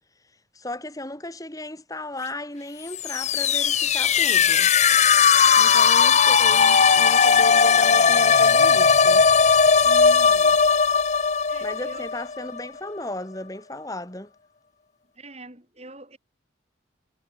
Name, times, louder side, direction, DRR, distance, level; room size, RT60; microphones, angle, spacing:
voice 1, 0.5-4.7 5.6-9.2 11.6-14.3, left 1 dB, 20° left, 2.7 m, -36 dB
sound 1, 2.9-12.7, left 6 dB, 35° left, 0.7 m, -18 dB
voice 2, 9.8-10.6 11.5-12.1 15.1-16.2, right 1 dB, 30° right, 6.9 m, -43 dB
head